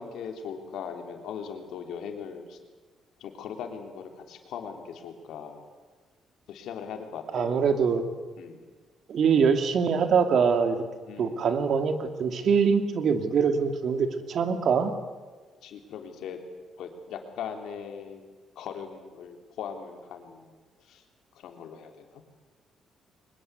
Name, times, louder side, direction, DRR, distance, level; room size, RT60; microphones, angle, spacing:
voice 1, 0.0-2.6 3.2-5.6 6.5-7.6 8.4-8.6 11.1-11.5 15.6-16.4 16.8-18.2 18.6-20.5 20.8-21.0 21.4-22.2, left 7 dB, 80° left, 4 dB, 3.5 m, -39 dB
voice 2, 7.3-8.0 9.1-10.8 11.2-14.9, right 6 dB, 65° right, 7 dB, 2.6 m, -23 dB
23.0 x 21.5 x 8.4 m, 1.4 s
cardioid pair, 90°, 0 cm